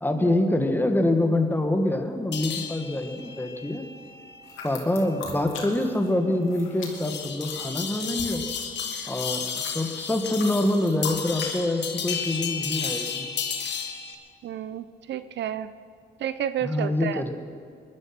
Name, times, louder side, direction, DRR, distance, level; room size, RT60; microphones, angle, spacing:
voice 1, 0.0-3.9 4.6-8.4 9.1-13.3 16.6-17.3, left 1 dB, 10° left, 5 dB, 1.7 m, -25 dB
sound 1, 2.3-14.1, left 7 dB, 60° left, 1.6 m, -34 dB
sound 2, 4.4-6.1 6.4-11.5, left 5 dB, 80° left, 2.8 m, -41 dB
voice 2, 14.4-15.7 16.2-17.2, right 10 dB, 65° right, 13 dB, 0.6 m, -31 dB
20.0 x 11.5 x 6.0 m, 2.3 s
cardioid pair, 90°, 20 cm